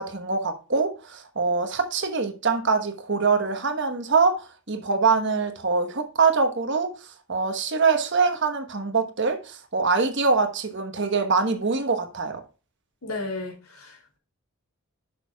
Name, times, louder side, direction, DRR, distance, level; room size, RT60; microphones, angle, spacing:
voice 1, 0.0-12.4, right 4 dB, 55° right, 1.2 m, -24 dB
voice 2, 13.0-14.2, left 2 dB, 75° left, 3.0 m, -34 dB
10.5 x 6.4 x 2.4 m
head